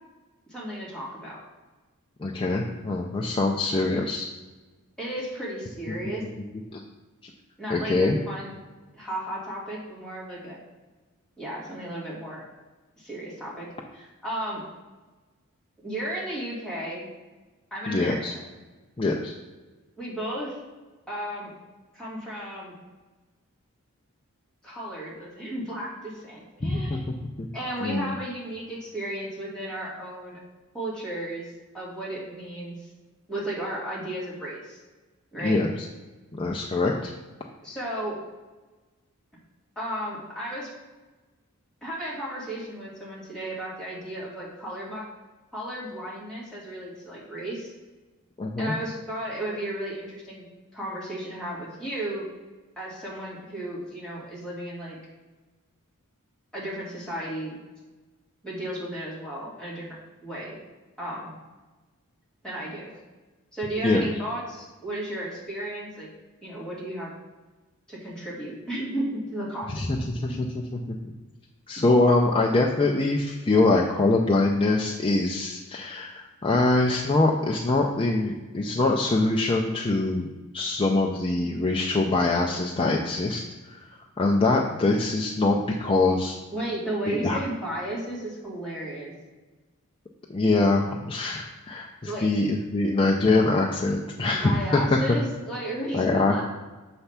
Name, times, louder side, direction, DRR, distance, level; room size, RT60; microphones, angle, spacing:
voice 1, 0.5-1.4 4.0-4.1 5.0-6.2 7.6-8.5 8.9-10.6 11.4-12.4 13.0-13.7 13.9-14.6 15.8-17.1 17.7-18.4 20.0-20.6 21.1-21.5 21.9-22.7 24.6-27.3 27.5-30.4 30.7-32.9 33.3-34.8 35.3-35.6 37.6-38.2 39.8-40.7 41.8-45.1 45.5-47.7 48.6-50.4 50.7-52.2 52.8-55.0 56.5-57.6 58.4-60.6 61.0-61.3 62.4-63.0 63.5-66.1 66.4-67.1 67.9-69.8 70.3-70.8 86.5-89.1 92.0-92.3 94.3-96.5, right 1 dB, 5° left, -8 dB, 2.2 m, -34 dB
voice 2, 2.2-4.3 6.7-6.8 7.2-7.3 7.7-8.2 17.9-18.3 19.0-19.3 26.6-27.5 27.8-28.1 35.4-35.7 36.3-37.1 48.4-48.7 63.8-64.1 69.7-70.5 70.9-71.1 71.7-80.3 80.5-83.8 84.2-86.4 87.1-87.4 90.3-95.2 95.9-96.5, left 2 dB, 25° left, -1 dB, 0.5 m, -24 dB
7.0 x 3.3 x 5.6 m, 1.2 s
head